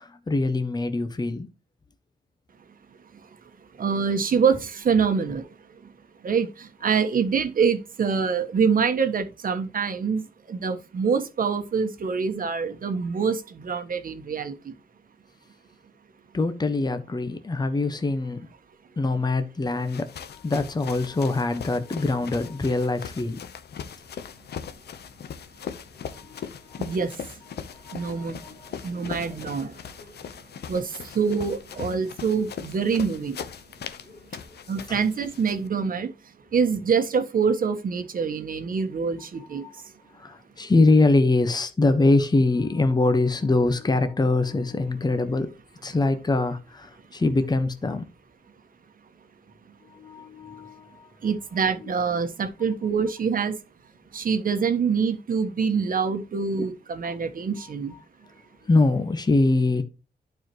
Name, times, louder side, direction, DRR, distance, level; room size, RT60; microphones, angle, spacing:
voice 1, 0.0-1.5 16.3-18.5 19.0-23.4 26.1-27.0 27.5-29.4 30.0-30.1 32.9-33.0 34.1-34.2 34.9-35.0 39.4-39.7 40.1-45.5 45.8-48.1 49.9-51.1 51.8-51.9 56.6-56.7 57.0-57.2 58.7-59.8, left 2 dB, 25° left, 1.1 m, -24 dB
voice 2, 3.8-5.5 6.2-10.2 10.5-14.5 26.8-27.1 27.9-28.4 28.8-29.7 30.7-33.4 34.7-36.1 36.5-39.6 51.2-53.5 54.1-57.9, right 6 dB, 60° right, 1.3 m, -25 dB
sound 1, 19.7-35.7, left 7 dB, 80° left, 0.9 m, -40 dB
11.5 x 4.8 x 3.0 m
wide cardioid pair, 115°, 17 cm